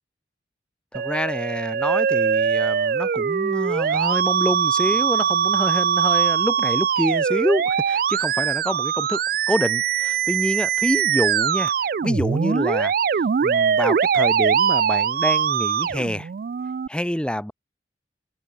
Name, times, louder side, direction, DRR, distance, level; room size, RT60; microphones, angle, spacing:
voice 1, 0.9-9.2 9.5-11.7 12.0-12.9 13.4-16.3 16.9-17.5, equal, 5° left, 0.9 m, -27 dB
Musical instrument, 0.9-16.9, right 7 dB, 55° right, 0.3 m, -22 dB
open air
head